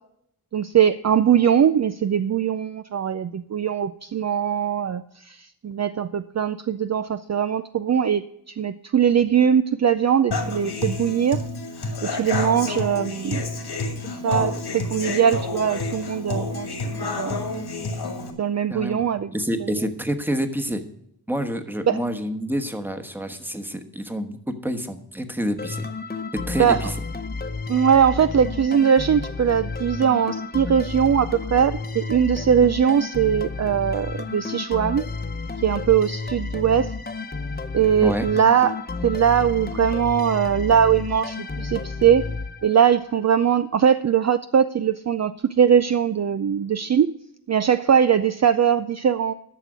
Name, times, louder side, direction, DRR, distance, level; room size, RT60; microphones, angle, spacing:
voice 1, 0.5-11.4 12.0-13.5 14.0-16.7 17.0-17.5 18.4-19.3 19.6-19.7 21.9-22.0 26.6-26.9 27.7-35.0 35.6-36.9 37.7-38.8 39.0-42.3 42.6-47.1 47.5-49.3, right 8 dB, 45° right, 11 dB, 0.4 m, -21 dB
Human voice / Acoustic guitar, 10.3-18.3, left 3 dB, 85° left, 2.3 m, -29 dB
voice 2, 18.7-19.0 19.3-20.8 21.3-25.8 26.3-27.0 38.0-38.3, equal, 5° right, 7 dB, 1.2 m, -28 dB
sound 1, 25.6-43.1, left 3 dB, 25° left, 1.0 m, -31 dB
11.5 x 6.7 x 6.1 m, 0.76 s
wide cardioid pair, 90°, 38 cm